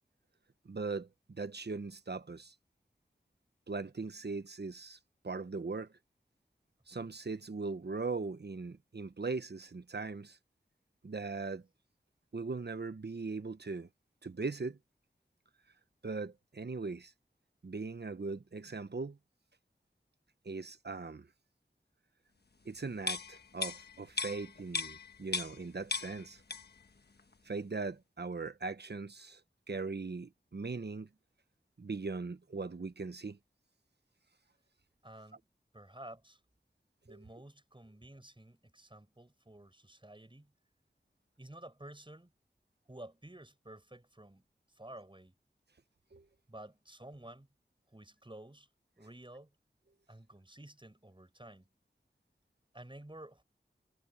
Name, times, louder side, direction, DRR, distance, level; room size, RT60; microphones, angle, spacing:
voice 1, 0.6-2.5 3.7-5.0 5.2-5.9 6.9-10.4 11.0-11.6 12.3-13.9 14.2-14.8 16.0-17.1 17.6-19.2 20.4-21.3 22.6-26.4 27.4-29.4 29.7-31.1 31.8-33.4 37.1-37.2 46.1-46.2, right 4 dB, 65° right, 1.0 m, -39 dB
sound 1, 23.0-25.7 25.9-26.9 27.2-27.3, left 3 dB, 60° left, 1.3 m, -37 dB
voice 2, 35.0-35.4 35.7-36.4 37.0-40.5 41.4-42.3 42.9-44.4 44.7-45.4 46.5-47.5 47.9-48.7 49.0-49.5 50.1-51.7 52.7-53.4, right 1 dB, 25° right, 6.1 m, -52 dB
wide cardioid pair, 45°, 19 cm